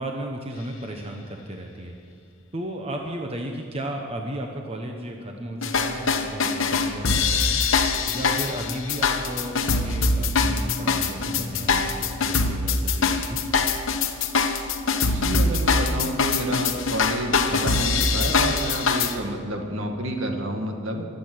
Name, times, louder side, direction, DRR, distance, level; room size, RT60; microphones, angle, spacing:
voice 1, 0.0-1.9 2.5-7.6 8.1-13.4, right 1 dB, 25° right, 2 dB, 1.0 m, -34 dB
sound 1, 5.6-19.1, left 4 dB, 60° left, 1.1 m, -23 dB
sound 2, 9.6-12.6, left 1 dB, 15° left, 1.7 m, -40 dB
voice 2, 15.1-21.1, right 1 dB, 65° right, 3 dB, 2.0 m, -29 dB
23.5 x 8.7 x 6.3 m, 2.4 s
head